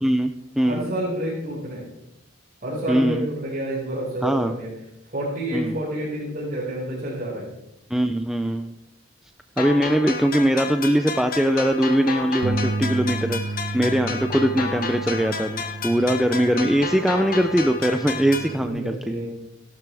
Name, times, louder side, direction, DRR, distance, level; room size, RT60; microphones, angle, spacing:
voice 1, 0.0-0.8 2.9-3.3 4.2-4.5 5.5-5.8 7.9-8.7 9.6-13.4 13.7-19.0, right 1 dB, ahead, 7 dB, 0.4 m, -21 dB
voice 2, 0.6-1.8 2.6-4.7 5.1-7.5 13.8-14.2 16.0-16.2 18.6-19.3, right 1 dB, 45° right, -8 dB, 5.1 m, -29 dB
sound 1, 9.6-18.6, left 5 dB, 50° left, 1.5 m, -31 dB
Bass guitar, 12.4-18.7, right 2 dB, 90° right, 0.7 m, -32 dB
17.5 x 12.0 x 3.4 m, 0.83 s
head